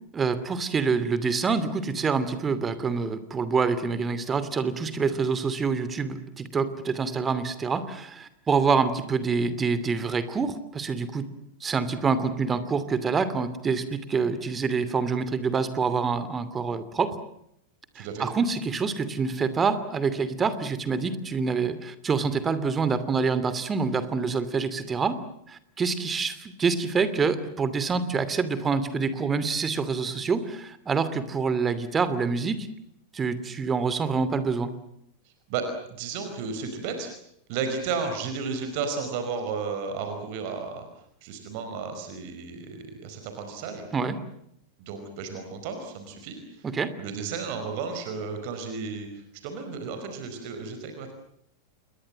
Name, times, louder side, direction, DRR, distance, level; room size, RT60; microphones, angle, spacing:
voice 1, 0.1-11.3 11.6-17.2 18.0-25.2 25.5-32.7 33.1-34.7 43.9-44.2 46.6-46.9, right 5 dB, 20° right, 13 dB, 2.8 m, -26 dB
voice 2, 17.9-18.3 35.2-35.6 36.0-37.1 37.5-40.9 41.2-43.8 44.8-46.7 47.0-51.1, right 5 dB, 45° right, 7 dB, 4.9 m, -33 dB
28.5 x 22.0 x 7.6 m, 0.73 s
figure-of-eight pair, 90°, 0 cm